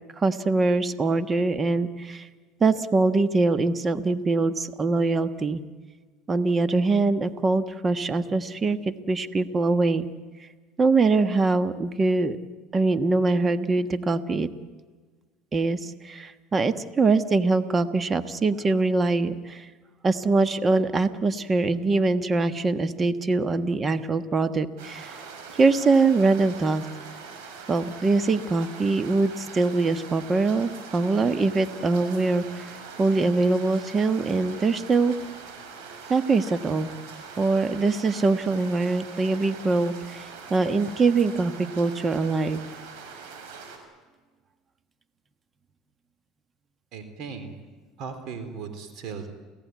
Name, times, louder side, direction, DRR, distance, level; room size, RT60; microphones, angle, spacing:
voice 1, 0.2-2.3 2.6-5.6 6.3-10.1 10.8-12.4 12.7-14.5 15.5-19.7 20.0-25.2 25.6-26.8 27.7-35.2 36.1-36.9 37.4-42.6, right 3 dB, 25° right, 11 dB, 1.4 m, -23 dB
sound 1, 24.8-43.8, right 5 dB, 75° right, 6.0 m, -42 dB
voice 2, 46.9-47.5 48.0-49.3, right 5 dB, 60° right, 8 dB, 3.9 m, -37 dB
29.0 x 17.0 x 9.5 m, 1.4 s
supercardioid pair, 100°, 0 cm